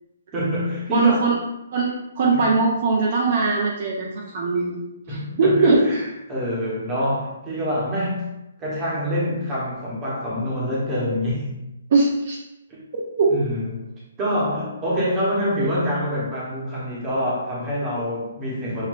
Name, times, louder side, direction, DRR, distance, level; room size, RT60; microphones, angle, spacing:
voice 1, 0.3-1.3 2.3-2.4 5.1-8.3 8.6-11.6 12.7-12.8 13.3-13.8 14.2-18.9, equal, 15° right, -6 dB, 1.1 m, -26 dB
voice 2, 0.9-1.4 1.7-4.8 5.1-5.8 11.9-12.4 12.9-13.3, right 4 dB, 40° right, -3 dB, 0.6 m, -20 dB
6.2 x 2.7 x 2.5 m, 0.90 s
hypercardioid pair, 170°, 0 cm